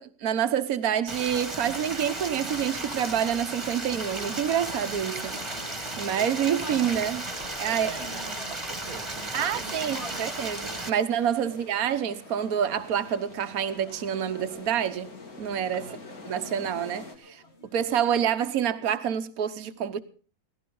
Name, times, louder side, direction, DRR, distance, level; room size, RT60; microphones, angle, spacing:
voice 1, 0.0-5.4 6.0-7.2 7.6-7.9 9.3-15.1 15.4-15.9 16.3-17.4 17.7-20.0, right 9 dB, 65° right, 1.5 m, -27 dB
Stream, 1.1-10.9, right 2 dB, 20° right, 1.8 m, -35 dB
sound 1, 4.6-18.7, left 2 dB, 45° left, 2.1 m, -48 dB
voice 2, 7.7-10.3 10.9-11.0 11.4-11.6 15.8-16.0, right 5 dB, 85° right, 2.1 m, -45 dB
sound 2, 11.1-17.2, left 3 dB, 70° left, 3.0 m, -46 dB
18.0 x 15.5 x 3.9 m
omnidirectional pair, 1.6 m